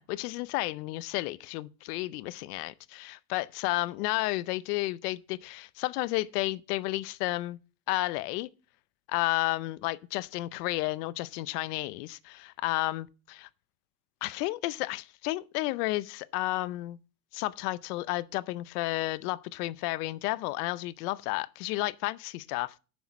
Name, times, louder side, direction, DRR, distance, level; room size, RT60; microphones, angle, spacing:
voice 1, 0.0-7.6 7.9-8.5 9.1-13.5 14.2-17.0 17.3-22.7, left 19 dB, 80° left, 0.7 m, -32 dB
7.1 x 6.3 x 5.8 m
supercardioid pair, 140°, 46 cm